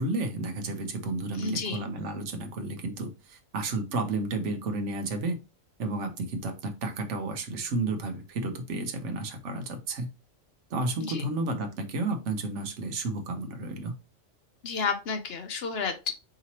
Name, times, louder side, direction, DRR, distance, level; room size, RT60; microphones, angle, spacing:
voice 1, 0.0-5.4 5.8-10.1 10.7-13.9, right 2 dB, 65° right, 6 dB, 1.1 m, -32 dB
voice 2, 1.4-1.8 11.0-11.2 14.6-16.1, left 5 dB, 60° left, 8 dB, 0.7 m, -31 dB
4.9 x 2.9 x 2.8 m, 0.28 s
omnidirectional pair, 1.3 m